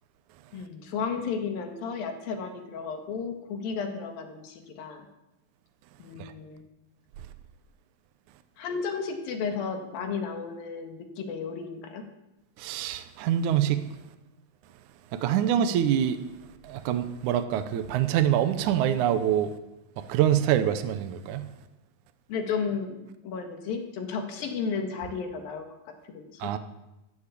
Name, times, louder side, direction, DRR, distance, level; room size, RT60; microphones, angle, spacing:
voice 1, 0.5-5.1 6.0-6.6 8.6-12.0 22.3-25.7 26.2-26.5, left 5 dB, 75° left, 3.5 m, -33 dB
voice 2, 12.6-13.9 15.1-16.2 16.6-19.5 20.0-21.5 26.4-26.6, right 10 dB, 70° right, 2.0 m, -25 dB
13.0 x 11.5 x 8.4 m
omnidirectional pair, 4.2 m